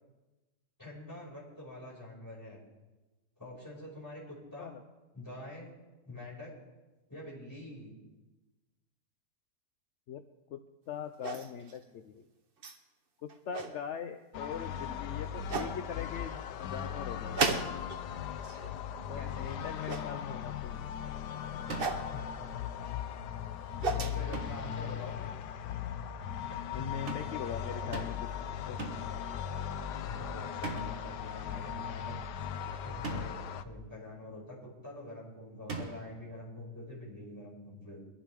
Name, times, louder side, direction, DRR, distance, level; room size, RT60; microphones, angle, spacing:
voice 1, 0.8-2.6 3.4-4.8 5.1-5.7 6.0-6.5 7.1-8.0 19.1-19.5 22.0-22.2 23.8-25.3 26.8-26.9 30.0-32.1 32.8-34.6 34.8-38.0, left 1 dB, 10° left, -6 dB, 5.5 m, -46 dB
voice 2, 10.9-12.3 13.2-17.8 19.1-20.9 26.7-28.8, left 8 dB, 60° left, 8 dB, 0.8 m, -41 dB
sound 1, 11.2-11.8 12.6-12.8 13.3-13.7 14.8-14.9 15.5-15.7 17.4-18.0 18.3-18.7 19.9-20.1 21.8-22.1 23.5-24.2, right 4 dB, 40° right, 1.0 m, -33 dB
sound 2, 14.3-33.6, left 9 dB, 85° left, 1.3 m, -38 dB
sound 3, 21.7-22.1 24.3-24.7 27.1-27.4 27.9-28.3 28.8-29.2 30.6-31.1 33.0-33.5 35.7-36.2, right 3 dB, 55° right, 1.9 m, -40 dB
23.0 x 11.5 x 3.5 m, 1.1 s
omnidirectional pair, 1.7 m